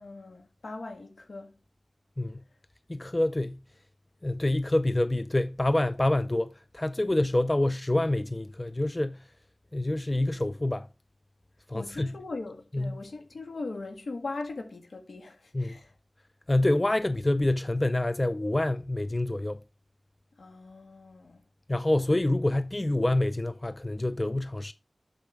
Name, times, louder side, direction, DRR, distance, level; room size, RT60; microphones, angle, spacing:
voice 1, 0.0-1.5 11.7-15.9 20.4-21.4, left 3 dB, 90° left, 1.8 m, -40 dB
voice 2, 2.9-3.6 4.2-9.2 9.7-10.9 11.7-12.2 12.7-13.0 15.5-15.8 16.5-19.6 21.7-24.7, left 1 dB, 25° left, 0.4 m, -27 dB
8.2 x 6.9 x 3.4 m
wide cardioid pair, 55°, 0 cm